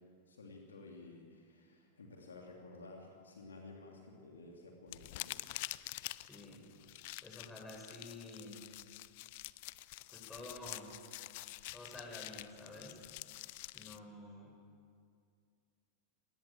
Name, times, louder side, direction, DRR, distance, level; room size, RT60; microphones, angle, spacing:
voice 1, 0.3-5.4, left 3 dB, 70° left, 1 dB, 3.1 m, -53 dB
sound 1, 4.9-14.0, left 20 dB, 50° left, 0.6 m, -47 dB
voice 2, 6.2-6.7 7.2-8.6 10.1-10.9 11.7-13.0 13.7-14.5, left 2 dB, 10° left, 0 dB, 7.6 m, -50 dB
28.0 x 20.0 x 7.7 m, 2.2 s
figure-of-eight pair, 90°, 0 cm